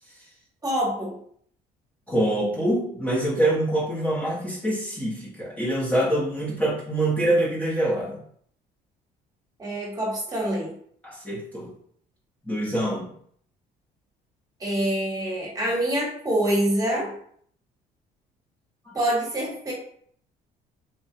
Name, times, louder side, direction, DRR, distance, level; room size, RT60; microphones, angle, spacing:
voice 1, 0.6-1.1 9.6-10.7 14.6-17.1 18.9-19.7, right 1 dB, 20° right, -3 dB, 1.1 m, -25 dB
voice 2, 2.1-8.2 11.0-11.7 12.5-13.1 18.9-19.0, right 1 dB, 10° left, -7 dB, 0.7 m, -25 dB
3.0 x 2.2 x 2.6 m, 0.62 s
cardioid pair, 110°, 17 cm